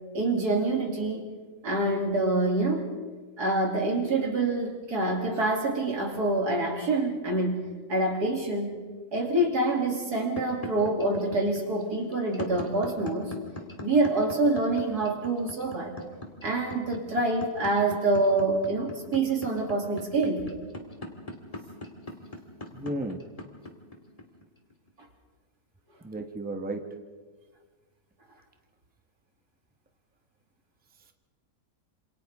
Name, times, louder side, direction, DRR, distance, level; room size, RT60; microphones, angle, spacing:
voice 1, 0.1-1.3 1.6-2.9 3.4-7.6 7.9-8.8 9.1-13.3 13.8-15.9 16.4-20.5, right 2 dB, 85° right, 0 dB, 3.5 m, -26 dB
sound 1, 10.4-24.9, left 2 dB, 20° left, 2.3 m, -39 dB
voice 2, 22.7-23.2 26.0-26.8, right 1 dB, 5° right, 5 dB, 1.1 m, -33 dB
27.5 x 27.0 x 3.7 m, 1.4 s
omnidirectional pair, 1.6 m